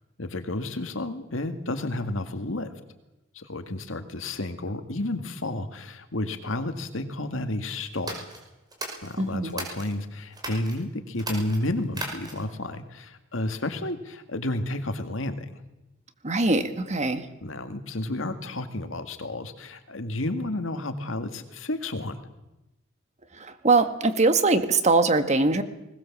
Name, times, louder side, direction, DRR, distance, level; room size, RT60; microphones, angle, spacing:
voice 1, 0.2-2.7 3.3-8.3 9.0-15.6 17.4-22.2, left 1 dB, 80° left, 8 dB, 2.0 m, -31 dB
sound 1, 7.9-9.9 10.3-10.8 11.1-12.6, right 2 dB, 20° right, 5.3 m, -37 dB
voice 2, 9.2-9.6 16.2-17.3 23.3-25.6, right 3 dB, 35° right, 9 dB, 1.7 m, -22 dB
20.5 x 19.5 x 7.3 m, 0.98 s
head